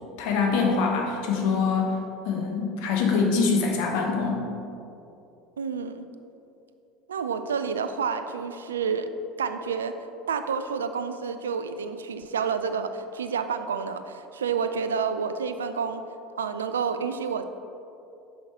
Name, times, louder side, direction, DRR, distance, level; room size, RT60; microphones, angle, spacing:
voice 1, 0.2-2.0 2.2-4.5, left 4 dB, 65° left, 1 dB, 1.1 m, -24 dB
voice 2, 5.6-6.0 7.1-9.1 9.4-9.9 10.3-16.0 16.4-17.4, right 6 dB, 80° right, 9 dB, 0.4 m, -29 dB
6.3 x 5.5 x 4.4 m, 2.7 s
hypercardioid pair, 70°, 0 cm